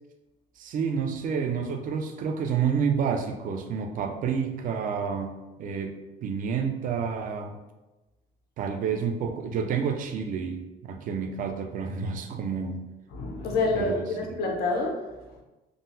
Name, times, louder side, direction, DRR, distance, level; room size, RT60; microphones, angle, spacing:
voice 1, 0.6-5.9 6.2-7.6 8.6-12.8 13.7-14.1, right 6 dB, 55° right, 5 dB, 0.4 m, -29 dB
voice 2, 13.1-15.4, left 3 dB, 65° left, 0 dB, 0.7 m, -28 dB
3.6 x 2.0 x 2.6 m, 1.1 s
cardioid pair, 110°, 17 cm